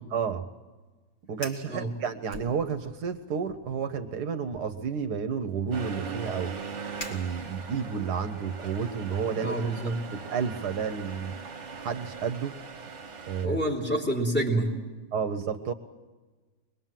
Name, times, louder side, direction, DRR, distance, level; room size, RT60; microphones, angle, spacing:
voice 1, 0.1-0.5 1.3-6.5 7.1-9.8 10.1-11.4 11.8-12.6 13.3-13.6 15.1-15.7, right 6 dB, 70° right, 9 dB, 1.4 m, -31 dB
Fire, 1.3-1.7 2.3-3.1 3.4-3.8 4.5-7.8, equal, 35° left, 2.8 m, -45 dB
Accelerating revving vroom, 5.7-13.5, right 5 dB, 45° right, 1.6 m, -40 dB
voice 2, 9.3-10.0 13.4-14.7, right 1 dB, 5° left, -1 dB, 3.5 m, -28 dB
24.0 x 21.5 x 7.5 m, 1.3 s
omnidirectional pair, 1.8 m